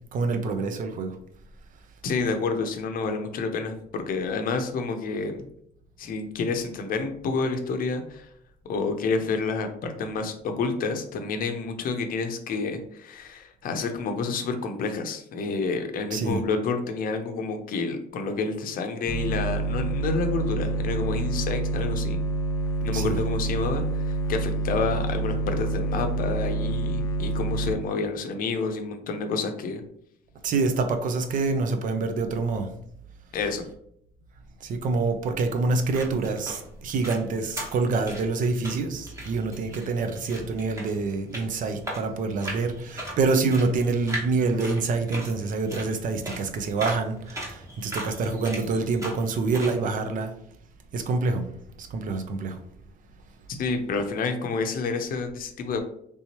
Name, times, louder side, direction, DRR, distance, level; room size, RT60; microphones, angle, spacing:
voice 1, 0.1-1.2 16.1-16.4 22.9-23.2 30.4-32.7 34.6-50.3 50.9-51.5 51.8-52.6, right 3 dB, 50° right, 7 dB, 0.5 m, -26 dB
voice 2, 2.0-5.5 6.0-8.3 8.6-22.2 22.8-29.8 33.3-33.6 53.5-55.8, left 4 dB, 55° left, 6 dB, 0.6 m, -29 dB
sound 1, 19.1-27.7, right 2 dB, 15° left, 0.6 m, -27 dB
sound 2, 35.7-49.8, right 1 dB, 20° right, 1.3 m, -39 dB
3.4 x 2.9 x 2.9 m, 0.70 s
cardioid pair, 110°, 17 cm